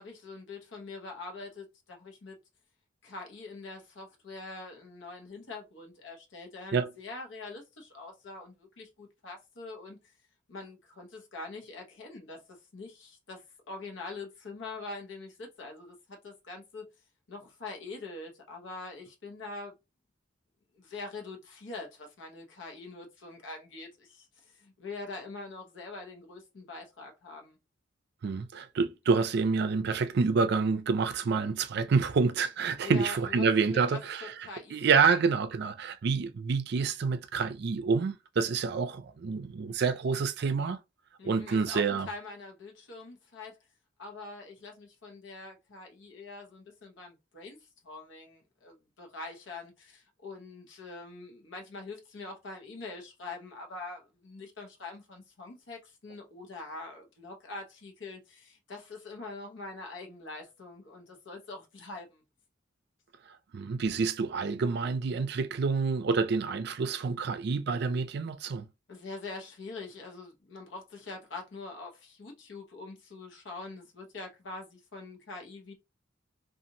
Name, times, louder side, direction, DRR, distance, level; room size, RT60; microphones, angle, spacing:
voice 1, 0.0-2.4 3.0-10.1 10.5-16.8 17.3-19.7 20.8-27.6 32.8-35.1 41.2-43.6 44.0-62.2 68.9-75.7, left 3 dB, 75° left, 0.8 m, -44 dB
voice 2, 28.2-34.3 34.7-40.8 41.2-42.1 63.5-68.6, right 5 dB, 60° right, 0.4 m, -28 dB
2.8 x 2.4 x 2.6 m
head